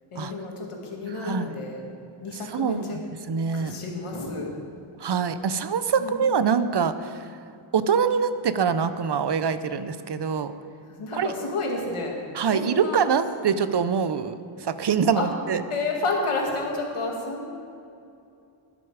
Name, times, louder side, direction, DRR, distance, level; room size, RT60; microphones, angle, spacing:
voice 1, 0.1-1.8 2.2-3.0 3.5-4.5 6.0-6.1 10.9-12.2 12.5-13.1 15.2-15.3 15.7-17.5, left 3 dB, 90° left, 0 dB, 2.0 m, -30 dB
voice 2, 1.2-1.5 2.3-3.0 3.3-3.7 5.0-7.1 7.7-10.5 11.1-11.3 12.3-15.6, right 6 dB, 55° right, 12 dB, 0.6 m, -24 dB
12.0 x 11.0 x 4.8 m, 2.6 s
wide cardioid pair, 105°, 50 cm